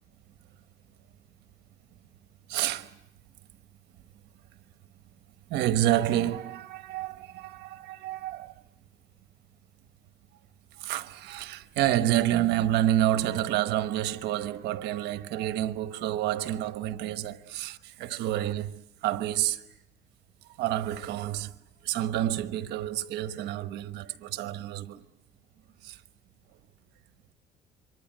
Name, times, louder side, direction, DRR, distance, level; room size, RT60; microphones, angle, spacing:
voice 1, 2.5-2.9 5.5-8.5 10.8-19.6 20.6-21.5 21.8-25.0 25.8-26.0, right 13 dB, 85° right, 1.2 m, -29 dB
27.0 x 24.0 x 9.0 m
cardioid pair, 110°, 17 cm